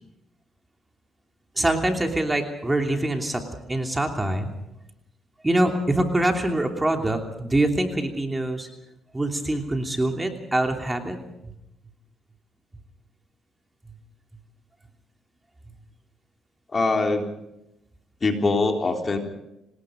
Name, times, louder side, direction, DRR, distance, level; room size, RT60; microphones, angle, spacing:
voice 1, 1.6-3.4 3.7-4.5 5.4-8.7 9.1-11.2 11.4-11.5, right 1 dB, 15° right, 4 dB, 3.0 m, -24 dB
voice 2, 16.7-17.2 18.2-19.2, left 3 dB, 35° left, 3 dB, 3.6 m, -22 dB
26.5 x 19.5 x 5.2 m, 0.87 s
cardioid pair, 90°, 0 cm